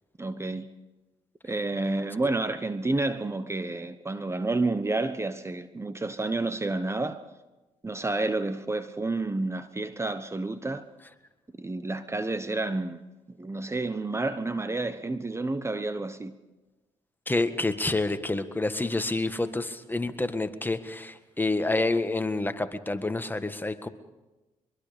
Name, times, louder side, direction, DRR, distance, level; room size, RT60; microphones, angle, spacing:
voice 1, 0.2-0.7 1.4-7.2 7.8-10.8 11.6-13.0 13.4-16.3, right 2 dB, 20° right, 1.1 m, -30 dB
voice 2, 17.3-23.9, left 2 dB, 15° left, 1.7 m, -28 dB
24.0 x 22.5 x 5.2 m
supercardioid pair, 60°, 13 cm